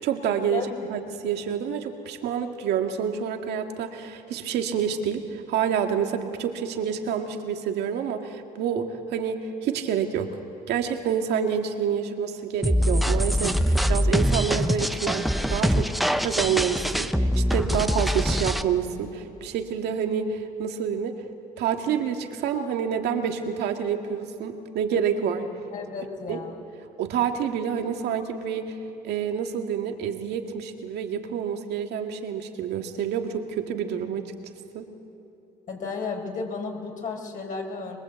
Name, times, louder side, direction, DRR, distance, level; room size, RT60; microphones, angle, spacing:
voice 1, 0.0-10.3 10.7-15.9 16.2-21.1 21.6-25.5 26.3-26.4 27.0-28.7 29.0-34.3 34.7-34.9, right 8 dB, 80° right, 5 dB, 2.1 m, -28 dB
sound 1, 12.6-18.6, equal, ahead, 0.9 m, -23 dB
voice 2, 25.7-26.6 35.7-38.0, left 4 dB, 50° left, 1 dB, 5.1 m, -33 dB
23.5 x 22.5 x 8.3 m, 3.0 s
cardioid pair, 110°, 17 cm